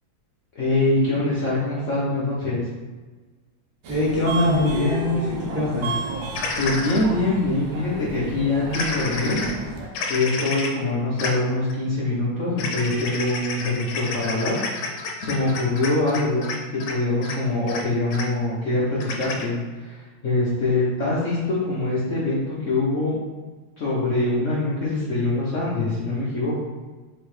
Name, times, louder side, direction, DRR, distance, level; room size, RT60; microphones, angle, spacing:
voice 1, 0.5-2.6 6.6-9.5 10.1-14.6 14.8-16.5 16.9-23.2 23.8-26.6, left 2 dB, 55° left, -8 dB, 1.0 m, -24 dB
Subway metro underground, 3.8-9.9, right 2 dB, 80° right, 1.5 m, -32 dB
voice 2, 3.9-5.9, left 2 dB, 10° right, -9 dB, 1.2 m, -22 dB
sound 1, 6.4-7.0 8.7-9.5 9.9-10.7 11.2-11.3 11.6-11.7 12.6-16.6 16.8-16.9 17.2-17.4 17.7-17.8 18.1-18.3 19.0-19.4, left 4 dB, 80° left, 1.4 m, -29 dB
4.7 x 3.2 x 3.1 m, 1.3 s
omnidirectional pair, 2.1 m